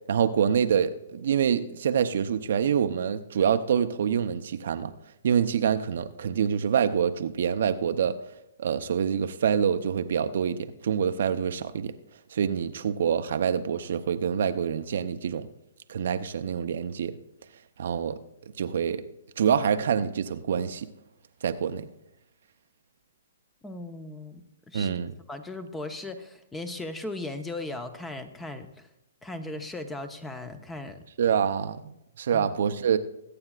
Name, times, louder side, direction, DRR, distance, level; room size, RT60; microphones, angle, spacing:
voice 1, 0.1-4.9 5.2-8.2 8.6-11.9 12.3-15.5 15.9-17.2 17.8-18.2 18.6-19.0 19.4-20.9 21.4-21.9 24.7-25.1 31.2-33.0, right 8 dB, 65° right, 9 dB, 0.7 m, -26 dB
voice 2, 23.6-25.0 25.3-28.9 29.2-31.0 32.3-32.5, left 2 dB, 10° left, 9 dB, 0.9 m, -37 dB
21.5 x 8.7 x 2.4 m, 0.84 s
hypercardioid pair, 130°, 0 cm